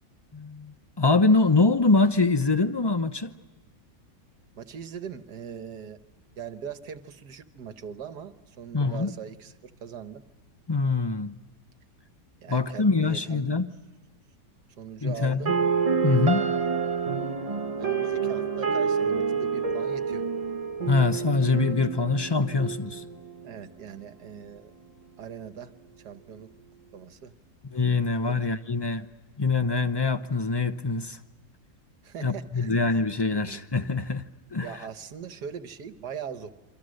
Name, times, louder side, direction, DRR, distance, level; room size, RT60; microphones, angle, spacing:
voice 1, 0.3-3.3 8.7-9.1 10.7-11.3 12.5-13.7 15.0-15.5 16.0-16.5 20.9-23.0 27.6-29.1 29.4-31.2 32.2-34.2 34.5-34.7, left 3 dB, 35° left, 0.4 m, -24 dB
voice 2, 4.6-6.0 6.4-10.2 12.4-13.4 14.8-15.5 17.8-20.2 23.4-24.7 25.2-25.7 26.0-26.5 26.9-27.3 28.3-28.4 32.0-32.8 33.3-33.7 34.6-36.5, right 7 dB, 70° right, 1.8 m, -40 dB
sound 1, 15.5-23.5, right 6 dB, 25° right, 1.1 m, -28 dB
28.0 x 25.0 x 6.5 m
omnidirectional pair, 1.8 m